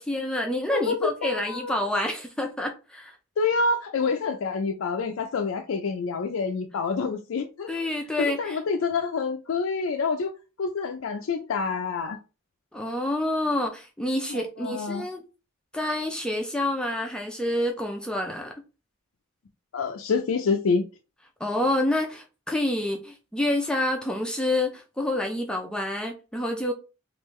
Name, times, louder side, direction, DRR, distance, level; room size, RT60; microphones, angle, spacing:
voice 1, 0.0-3.2 7.7-8.6 12.7-15.2 15.7-18.5 21.4-26.7, left 1 dB, 5° left, 0.4 m, -28 dB
voice 2, 0.7-1.7 3.4-7.7 8.2-10.3 10.6-12.2 14.3-15.1 19.7-20.8, left 4 dB, 85° left, 0.4 m, -27 dB
3.5 x 2.5 x 3.1 m
head